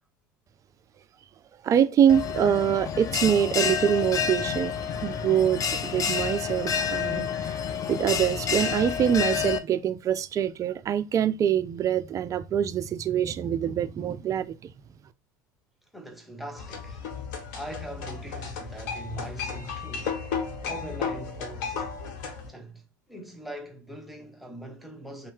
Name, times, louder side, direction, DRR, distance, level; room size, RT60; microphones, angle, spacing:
voice 1, 1.6-4.8 5.0-7.3 7.9-14.6, right 9 dB, 30° right, 0.3 m, -24 dB
Bell, 2.1-9.6, left 7 dB, 35° left, 0.4 m, -29 dB
voice 2, 15.9-17.0 17.5-20.2 20.7-21.9 22.5-25.3, right 1 dB, ahead, 0.8 m, -41 dB
sound 1, 16.6-22.5, left 6 dB, 65° left, 1.0 m, -34 dB
2.7 x 2.0 x 3.3 m
hypercardioid pair, 80°, 11 cm